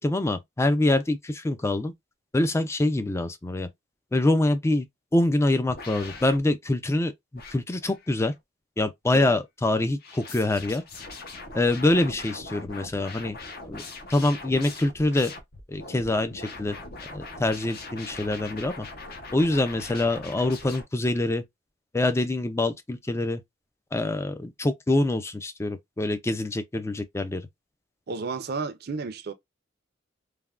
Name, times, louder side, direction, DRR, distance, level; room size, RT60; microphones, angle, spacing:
voice 1, 0.0-1.9 2.3-3.7 4.1-4.9 5.1-8.3 8.8-10.8 11.5-13.4 13.6-13.8 14.1-15.3 15.7-16.8 17.1-18.9 19.3-21.4 21.9-23.4 23.9-27.4, left 2 dB, 15° left, 0.3 m, -25 dB
sound 1, 5.7-6.4 7.4-8.4 10.0-20.8, left 3 dB, 50° left, 0.7 m, -41 dB
voice 2, 28.1-29.3, right 4 dB, 55° right, 0.5 m, -32 dB
3.3 x 2.1 x 2.3 m
head